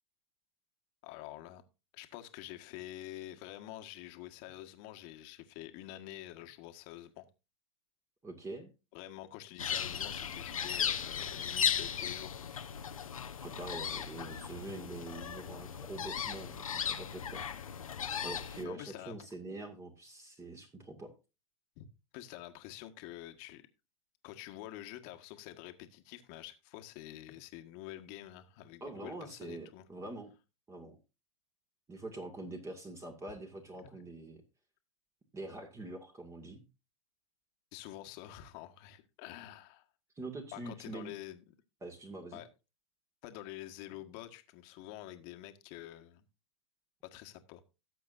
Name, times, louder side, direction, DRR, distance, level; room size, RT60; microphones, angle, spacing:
voice 1, 1.0-1.6 1.9-7.3 8.9-12.3 18.6-19.2 21.8-23.6 24.2-29.9 33.8-33.9 37.7-39.9 40.5-41.5 42.3-42.5 43.2-46.2 47.1-47.6, left 14 dB, 50° left, 1.6 m, -47 dB
voice 2, 8.2-8.7 13.4-17.4 18.2-21.1 28.8-30.3 30.7-31.0 31.9-34.4 35.3-36.6 40.2-41.1 41.8-42.4, right 2 dB, 15° right, 2.2 m, -45 dB
sound 1, 9.6-18.6, left 8 dB, 90° left, 1.1 m, -36 dB
17.5 x 7.6 x 2.6 m
hypercardioid pair, 110°, 17 cm